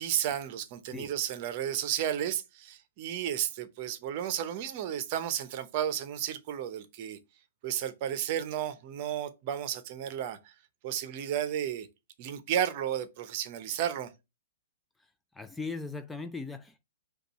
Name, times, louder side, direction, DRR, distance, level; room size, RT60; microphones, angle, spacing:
voice 1, 0.0-7.2 7.6-10.5 10.8-11.9 12.2-14.1, right 10 dB, 45° right, 0.7 m, -33 dB
voice 2, 15.4-16.8, left 4 dB, 5° left, 0.3 m, -38 dB
5.2 x 2.4 x 4.1 m
hypercardioid pair, 125°, 0 cm